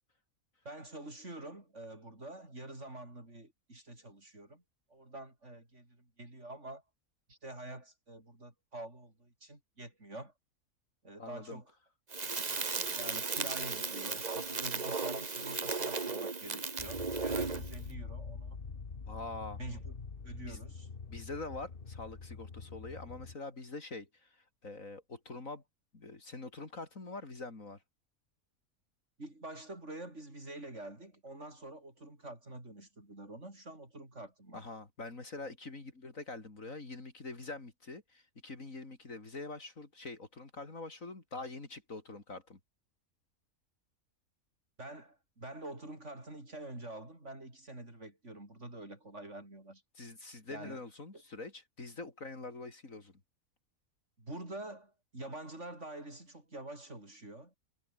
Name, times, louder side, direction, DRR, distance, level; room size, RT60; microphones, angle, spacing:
voice 1, 0.7-4.6 4.9-6.8 7.3-10.3 11.0-11.7 12.5-12.6 12.9-18.6 19.6-20.0 20.2-20.9 29.2-34.6 44.8-49.8 50.5-50.8 51.1-51.2 54.2-57.5, right 2 dB, 55° right, 7.1 m, -47 dB
voice 2, 11.2-11.6 19.1-19.6 20.5-20.6 21.1-25.6 25.9-27.8 34.5-42.6 50.0-53.1, left 3 dB, 70° left, 4.0 m, -45 dB
Crackle, 12.1-17.8, right 4 dB, 30° right, 1.4 m, -35 dB
sound 1, 16.8-23.4, left 4 dB, 40° left, 1.7 m, -45 dB
omnidirectional pair, 1.5 m